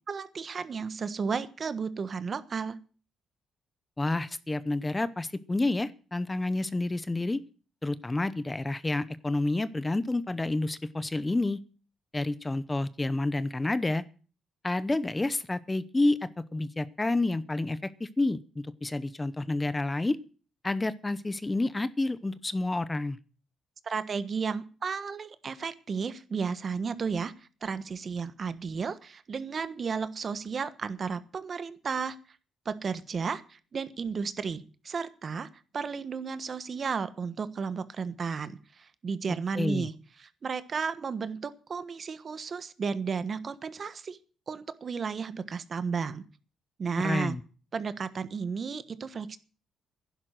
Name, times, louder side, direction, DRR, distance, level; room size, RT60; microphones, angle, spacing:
voice 1, 0.1-2.8 23.8-32.2 32.6-39.9 40.2-44.2 44.5-46.2 46.8-47.3 47.7-49.4, right 5 dB, 45° right, 13 dB, 1.3 m, -33 dB
voice 2, 4.0-7.4 7.8-11.6 12.1-14.0 14.6-20.2 20.6-23.2 39.6-39.9 47.0-47.4, left 2 dB, 15° left, 16 dB, 0.7 m, -29 dB
11.0 x 11.0 x 7.7 m, 0.39 s
cardioid pair, 90°, 0 cm